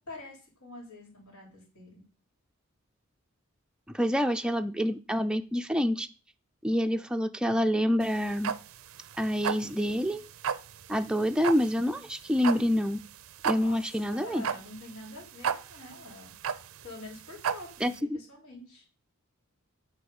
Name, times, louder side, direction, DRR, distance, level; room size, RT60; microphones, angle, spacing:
voice 1, 0.0-2.0 13.5-16.3 16.8-18.8, left 2 dB, 85° left, -1 dB, 3.8 m, -46 dB
voice 2, 3.9-6.1 6.6-8.5 9.2-10.2 10.9-13.0 13.4-14.4 17.8-18.2, equal, 5° right, 7 dB, 0.4 m, -27 dB
sound 1, 8.0-18.0, right 7 dB, 75° right, 0.5 m, -34 dB
8.3 x 4.0 x 7.0 m, 0.36 s
head